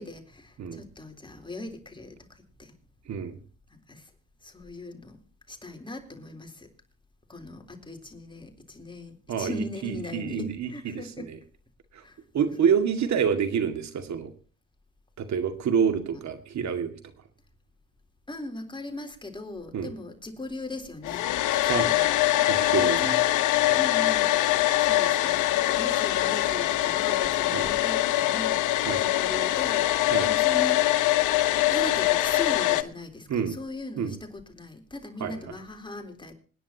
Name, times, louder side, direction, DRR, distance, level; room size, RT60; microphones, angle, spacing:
voice 1, 0.0-2.7 3.9-4.1 4.4-5.2 5.5-6.7 7.3-11.3 12.0-12.2 18.3-21.3 21.6-22.1 22.8-23.3 23.7-30.9 31.7-36.3, left 2 dB, 15° left, 4 dB, 3.8 m, -39 dB
voice 2, 9.3-11.4 11.9-12.0 12.3-14.3 15.2-16.9 19.7-19.9 21.7-21.9 22.5-23.1 23.7-23.8 27.5-27.7 28.9-29.0 30.1-30.3 33.3-33.6 34.0-34.1 35.2-35.5, right 7 dB, 65° right, 8 dB, 2.2 m, -27 dB
Domestic sounds home sounds, 21.0-32.8, left 15 dB, 85° left, 1.1 m, -23 dB
26.5 x 10.0 x 2.9 m, 0.40 s
cardioid pair, 90°, 30 cm